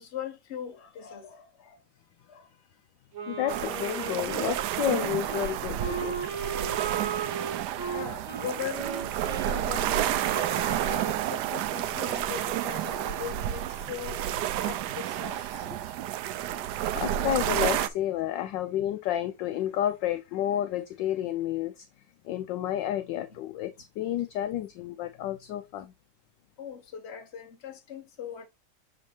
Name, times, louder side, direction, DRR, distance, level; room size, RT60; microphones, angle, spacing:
voice 1, 0.0-1.8 2.2-2.5 7.9-14.2 14.6-15.9 26.6-28.4, left 8 dB, 35° left, 1.2 m, -40 dB
Wind instrument woodwind instrument, 3.1-11.6, right 6 dB, 65° right, 2.1 m, -36 dB
voice 2, 3.3-6.5 16.9-21.9 22.2-25.9, left 12 dB, 75° left, 1.1 m, -31 dB
sound 1, 3.5-17.9, right 12 dB, 85° right, 0.9 m, -30 dB
6.8 x 5.2 x 2.8 m
omnidirectional pair, 2.4 m